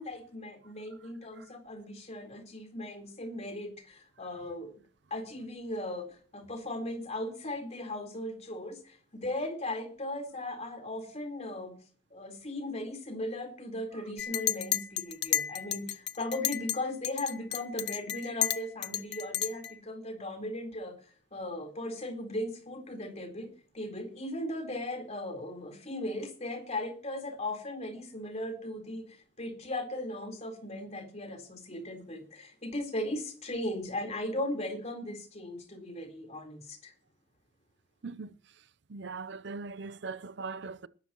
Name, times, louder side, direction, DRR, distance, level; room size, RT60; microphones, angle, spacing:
voice 1, 0.0-4.8 5.1-11.8 12.1-21.0 21.3-36.9, left 1 dB, 35° left, 4.1 m, -37 dB
Chink clink, 14.2-16.8 17.0-19.7, left 13 dB, 60° left, 0.8 m, -32 dB
voice 2, 38.0-38.4 38.9-40.9, right 4 dB, 65° right, 0.7 m, -40 dB
20.0 x 11.5 x 3.0 m
head